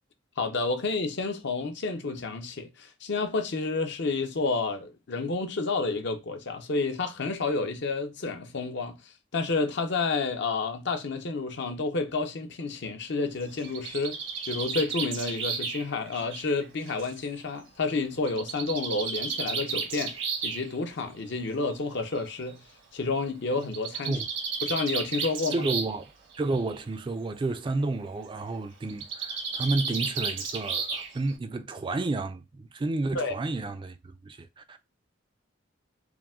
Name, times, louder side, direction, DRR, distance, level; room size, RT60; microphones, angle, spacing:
voice 1, 0.4-9.0 9.3-14.2 14.5-20.1 20.4-22.6 22.9-24.2 24.6-25.6 33.1-33.3, left 3 dB, 65° left, 0.7 m, -30 dB
Bird, 13.4-17.2 18.3-20.6 21.7-21.8 22.1-22.2 22.5-22.6 23.6-26.0 26.3-26.8 28.9-31.3, right 5 dB, 80° right, 1.1 m, -33 dB
voice 2, 25.5-26.1 26.4-34.8, right 2 dB, 25° right, 0.3 m, -31 dB
4.8 x 2.1 x 3.5 m
head